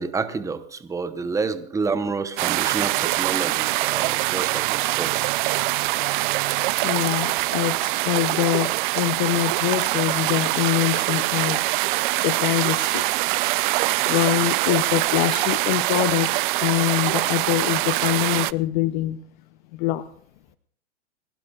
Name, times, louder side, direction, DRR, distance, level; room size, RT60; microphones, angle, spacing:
voice 1, 0.0-5.3, right 4 dB, 10° right, 0.9 m, -29 dB
sound 1, 2.4-18.5, right 20 dB, 50° right, 0.4 m, -23 dB
voice 2, 6.8-11.6 12.2-13.1 14.1-16.3 16.6-19.2 19.7-20.1, left 15 dB, 45° left, 0.6 m, -24 dB
29.5 x 12.0 x 2.4 m
hypercardioid pair, 130°, 34 cm